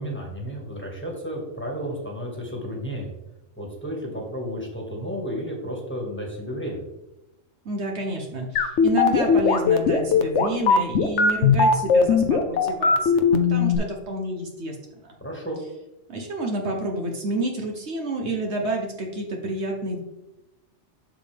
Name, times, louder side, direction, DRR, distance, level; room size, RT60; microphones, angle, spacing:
voice 1, 0.0-3.1 3.6-6.8 15.2-15.6, equal, 10° left, -2 dB, 1.7 m, -32 dB
voice 2, 7.6-14.8 15.0-15.1 16.1-20.0, right 2 dB, 60° right, 1 dB, 1.3 m, -29 dB
sound 1, 8.6-13.8, left 5 dB, 65° left, 1.0 m, -18 dB
7.4 x 6.8 x 3.4 m, 0.95 s
omnidirectional pair, 1.3 m